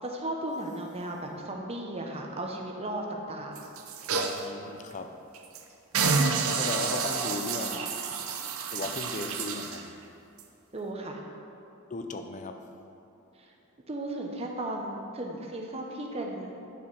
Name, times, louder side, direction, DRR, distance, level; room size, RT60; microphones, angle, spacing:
voice 1, 0.0-3.6 10.7-11.2 13.4-13.5 13.9-16.5, right 1 dB, 25° right, 1 dB, 0.8 m, -35 dB
sound 1, 3.6-4.5 4.9-5.0 5.3-5.6 5.9-9.8 10.4-10.5, right 5 dB, 70° right, 0.7 m, -29 dB
voice 2, 4.1-5.2 6.5-8.0 8.7-9.9 11.9-12.7, left 3 dB, 35° left, 7 dB, 0.5 m, -37 dB
10.0 x 4.8 x 5.5 m, 2.7 s
head